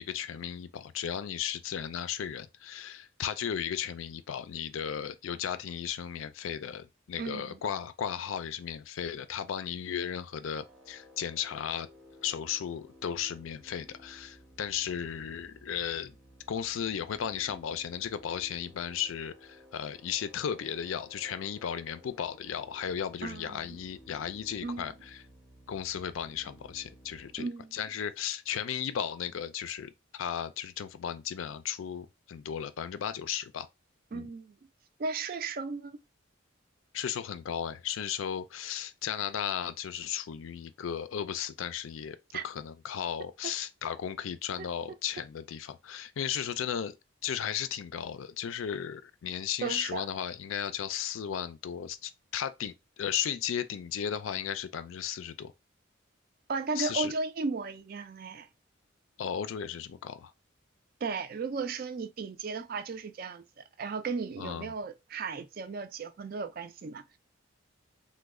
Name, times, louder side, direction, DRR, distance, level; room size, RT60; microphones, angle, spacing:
voice 1, 0.0-11.9 12.2-16.1 16.5-24.9 25.7-33.7 34.1-34.2 36.9-42.2 42.4-47.0 47.2-55.5 56.8-57.1 59.2-60.3 64.4-64.7, left 8 dB, 80° left, 0.4 m, -35 dB
voice 2, 7.2-7.6 23.2-23.8 24.6-24.9 27.4-27.7 34.1-34.6 35.0-36.0 42.3-42.5 44.6-44.7 49.6-50.1 56.5-58.5 61.0-63.5 63.8-67.2, right 4 dB, 45° right, 0.3 m, -35 dB
sound 1, 10.4-27.4, equal, ahead, 0.6 m, -56 dB
3.1 x 2.2 x 3.5 m
head